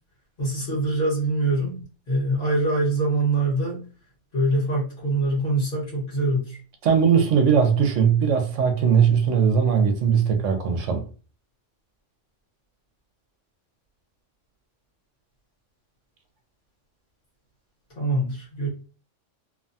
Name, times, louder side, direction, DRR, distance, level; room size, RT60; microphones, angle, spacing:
voice 1, 0.4-1.8 2.1-3.9 4.3-6.6 17.9-18.7, right 2 dB, 50° left, 1.4 m, -24 dB
voice 2, 6.8-11.1, right 7 dB, 75° right, 1.0 m, -19 dB
2.8 x 2.2 x 2.6 m
omnidirectional pair, 1.3 m